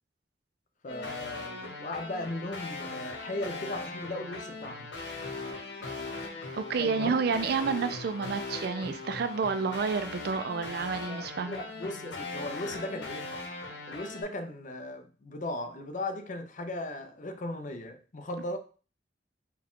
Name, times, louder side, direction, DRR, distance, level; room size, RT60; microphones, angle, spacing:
voice 1, 0.8-4.9 6.8-7.4 11.1-13.3 13.9-18.6, left 1 dB, 45° left, 0.5 m, -37 dB
sound 1, 0.9-14.2, left 3 dB, 90° left, 1.0 m, -39 dB
voice 2, 6.5-11.6, right 5 dB, 60° right, 0.4 m, -30 dB
4.6 x 2.3 x 3.6 m
head